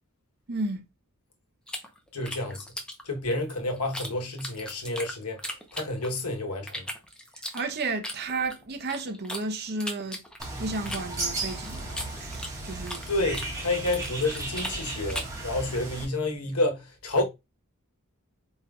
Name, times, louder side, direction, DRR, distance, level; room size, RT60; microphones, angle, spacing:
voice 1, 0.5-0.8 7.5-10.2 10.6-13.0, right 3 dB, 50° right, 0.7 m, -32 dB
sound 1, 1.7-4.1 4.4-6.3 6.7-9.4 9.8-13.1 13.3-15.4, left 1 dB, 5° left, 0.6 m, -37 dB
voice 2, 2.1-2.7 3.0-6.9 13.1-17.3, left 2 dB, 90° left, 1.0 m, -29 dB
Bird, 10.4-16.0, right 2 dB, 15° right, 1.4 m, -35 dB
4.3 x 3.7 x 2.3 m
head